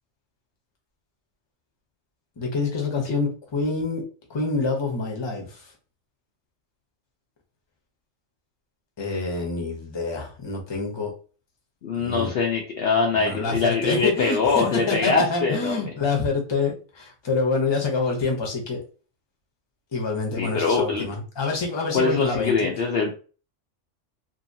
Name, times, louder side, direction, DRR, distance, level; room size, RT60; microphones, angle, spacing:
voice 1, 2.4-4.0 4.3-5.7 9.0-11.1 11.9-12.3 13.1-18.8 19.9-22.5, left 4 dB, 25° left, 0 dB, 0.7 m, -27 dB
voice 2, 11.8-15.9 20.4-21.1 21.9-23.2, left 4 dB, 60° left, 0 dB, 0.7 m, -23 dB
2.8 x 2.7 x 2.6 m, 0.37 s
omnidirectional pair, 1.3 m